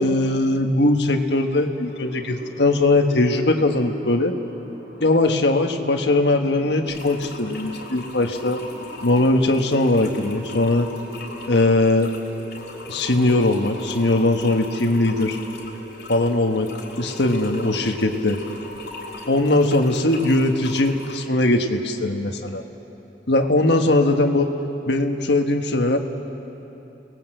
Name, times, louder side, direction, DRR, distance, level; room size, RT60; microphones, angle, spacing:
voice 1, 0.0-4.3 5.0-8.6 9.0-10.9 11.5-12.1 12.9-15.4 16.1-16.7 17.0-18.4 19.3-22.6 23.3-24.5 24.8-26.0, left 2 dB, 85° left, 4 dB, 1.5 m, -20 dB
sound 1, 1.8-21.0, right 1 dB, 70° right, 5.1 m, -41 dB
sound 2, 6.9-21.3, left 3 dB, 65° left, 3.5 m, -41 dB
28.0 x 19.0 x 7.9 m, 3.0 s
head